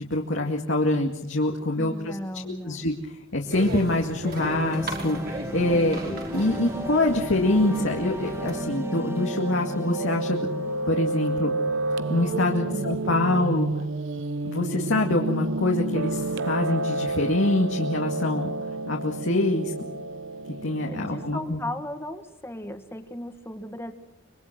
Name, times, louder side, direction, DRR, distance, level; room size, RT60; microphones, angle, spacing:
voice 1, 0.0-2.2 2.4-2.9 3.3-10.5 10.9-11.5 12.1-13.7 14.4-18.5 18.9-19.7 20.6-21.6, left 2 dB, 70° left, 1 dB, 2.3 m, -25 dB
voice 2, 1.7-2.9 12.7-12.9 20.9-23.9, left 1 dB, 15° left, 7 dB, 1.9 m, -36 dB
sound 1, 3.5-8.6, right 1 dB, 50° right, 5.0 m, -36 dB
sound 2, 4.3-11.2, equal, 15° right, 2.1 m, -35 dB
Piano, 7.0-21.4, right 2 dB, 70° right, 0.9 m, -31 dB
26.0 x 23.5 x 6.1 m, 0.90 s
head